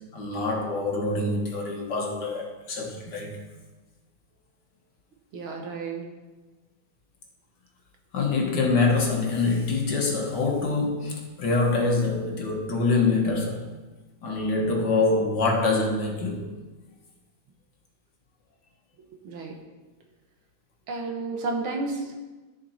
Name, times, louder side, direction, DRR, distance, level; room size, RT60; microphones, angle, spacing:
voice 1, 0.1-3.4 8.1-13.6 14.2-16.5, left 3 dB, 55° left, 0 dB, 1.9 m, -25 dB
voice 2, 5.3-6.1 19.2-19.6 20.9-22.2, right 3 dB, 75° right, 2 dB, 2.1 m, -31 dB
11.5 x 7.3 x 4.3 m, 1.2 s
omnidirectional pair, 2.3 m